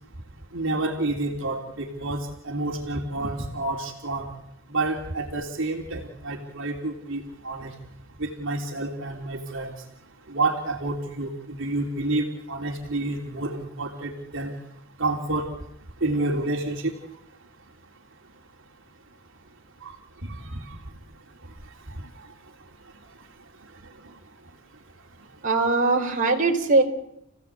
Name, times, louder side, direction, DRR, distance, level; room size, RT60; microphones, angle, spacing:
voice 1, 0.5-4.3 4.7-7.7 8.2-9.8 10.3-14.5 15.0-15.5 16.0-16.9 19.8-19.9 20.2-20.8 21.9-22.3 24.0-24.1, right 2 dB, 65° right, 2 dB, 3.2 m, -29 dB
voice 2, 25.4-26.8, right 3 dB, 40° right, 2 dB, 4.1 m, -21 dB
30.0 x 16.5 x 8.3 m, 0.79 s
head